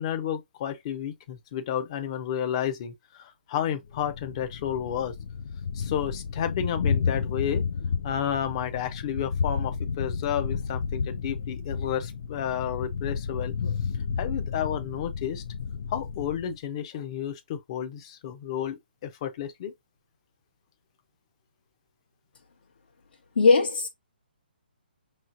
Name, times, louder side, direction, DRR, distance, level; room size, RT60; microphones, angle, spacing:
voice 1, 0.0-5.1 5.7-7.7 8.0-13.5 14.2-15.4 15.9-19.7, left 9 dB, 35° left, 0.8 m, -31 dB
Thunder, 3.9-16.6, left 5 dB, 55° left, 0.5 m, -31 dB
voice 2, 23.4-23.9, left 4 dB, 70° left, 1.1 m, -19 dB
5.5 x 3.2 x 2.6 m
hypercardioid pair, 155°, 6 cm